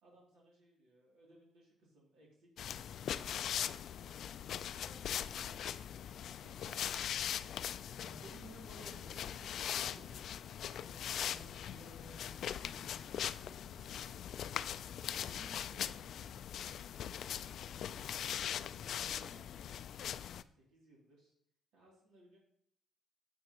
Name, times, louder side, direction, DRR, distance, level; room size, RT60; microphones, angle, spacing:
voice 1, 0.0-4.2 4.6-5.8 6.4-7.2 7.8-7.9 9.4-9.5 17.3-20.0 20.5-21.3 21.7-22.4, right 1 dB, 85° right, -3 dB, 2.8 m, -64 dB
sound 1, 2.6-20.4, left 9 dB, 70° left, 0.3 m, -41 dB
voice 2, 6.5-6.8 7.1-7.2 8.0-14.3 15.2-16.3, right 2 dB, 45° right, -2 dB, 2.6 m, -57 dB
9.3 x 7.9 x 2.9 m, 0.69 s
cardioid pair, 90°, 0 cm